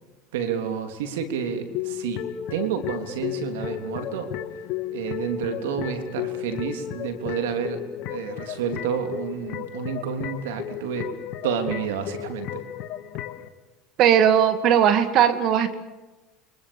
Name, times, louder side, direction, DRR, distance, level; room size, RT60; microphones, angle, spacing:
voice 1, 0.3-2.2 2.5-4.3 4.9-11.1 11.4-12.6, right 7 dB, 85° right, 7 dB, 3.4 m, -29 dB
sound 1, 1.7-13.5, left 11 dB, 60° left, 2.0 m, -34 dB
voice 2, 14.0-15.7, right 9 dB, 55° right, 10 dB, 2.4 m, -18 dB
28.0 x 24.0 x 7.2 m, 1.1 s
supercardioid pair, 100°, 0 cm